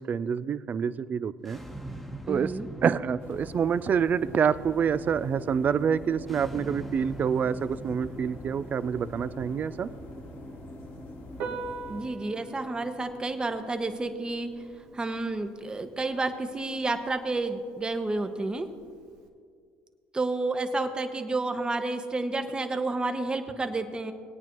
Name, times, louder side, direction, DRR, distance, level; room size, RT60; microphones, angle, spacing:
voice 1, 0.0-1.6 2.3-2.5 2.8-9.9, right 7 dB, 40° right, 15 dB, 0.4 m, -27 dB
sound 1, 1.4-16.3, right 1 dB, ahead, 1.1 m, -43 dB
voice 2, 2.3-2.7 11.9-14.5 14.9-18.7 20.1-24.1, right 2 dB, 20° right, 7 dB, 1.0 m, -30 dB
sound 2, 3.2-12.1, left 1 dB, 75° left, 2.0 m, -47 dB
Piano, 11.3-19.3, right 3 dB, 85° right, 1.5 m, -44 dB
20.0 x 9.0 x 3.1 m, 2.1 s
supercardioid pair, 90°, 4 cm